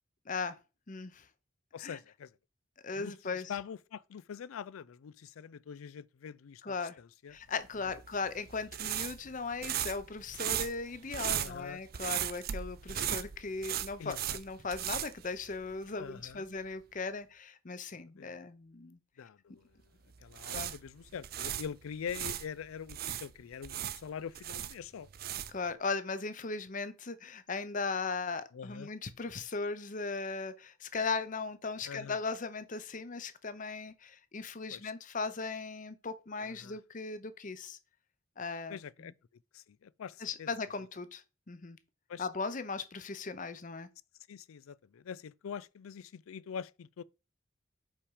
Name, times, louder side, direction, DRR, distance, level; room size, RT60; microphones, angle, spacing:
voice 1, 0.9-1.3 1.8-2.0 2.8-3.5 6.6-7.0 7.3-19.0 20.5-20.7 25.5-37.8 38.4-39.1 40.2-41.8 42.2-43.9, left 4 dB, 40° left, 0.7 m, -38 dB
voice 2, 1.7-2.3 2.9-7.3 7.8-7.9 11.3-11.8 14.0-14.4 16.0-16.5 18.1-18.3 19.2-19.8 20.2-25.1 28.5-28.9 31.9-32.2 34.7-34.9 36.4-36.8 38.7-39.1 39.5-40.5 42.1-42.3 44.3-47.0, left 7 dB, 90° left, 0.4 m, -44 dB
sound 1, 7.9-15.9 16.2-16.4 20.1-22.5 22.9-25.7, right 10 dB, 45° right, 0.5 m, -37 dB
5.6 x 5.0 x 4.8 m
head